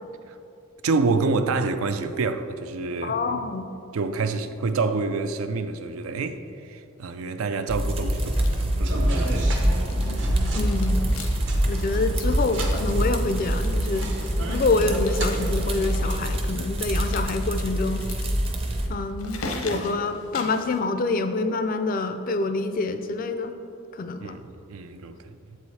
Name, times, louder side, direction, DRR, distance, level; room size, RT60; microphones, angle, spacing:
voice 1, 0.8-3.4 3.9-9.9 24.2-25.6, right 3 dB, 80° right, 0.4 m, -28 dB
voice 2, 3.0-3.7 10.5-11.2 11.7-14.1 14.5-18.0 18.9-23.5 23.9-24.3, left 3 dB, 40° left, 0.3 m, -26 dB
sound 1, 7.7-18.9, equal, 25° right, 0.6 m, -25 dB
sound 2, 8.2-8.8 9.1-10.2 10.4-11.6 11.8-11.9 12.2-14.4 14.9-16.1 16.9-20.8, left 3 dB, 85° left, 0.8 m, -40 dB
sound 3, 8.8-16.2, right 1 dB, 55° right, 0.9 m, -36 dB
7.6 x 4.8 x 4.1 m
head